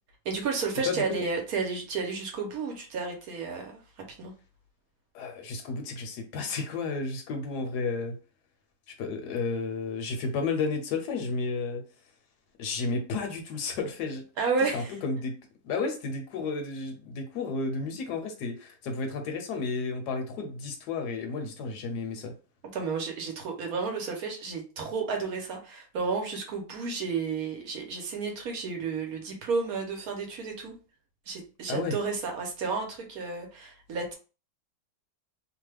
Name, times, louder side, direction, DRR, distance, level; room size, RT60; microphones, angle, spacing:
voice 1, 0.2-4.3 14.4-15.0 22.7-30.7 31.3-34.1, right 4 dB, 65° right, 2 dB, 1.1 m, -32 dB
voice 2, 5.1-8.2 9.0-11.8 12.6-14.2 14.7-15.4 15.6-22.3 31.7-32.0, left 4 dB, 75° left, 4 dB, 1.2 m, -32 dB
3.0 x 2.2 x 3.2 m, 0.35 s
omnidirectional pair, 1.8 m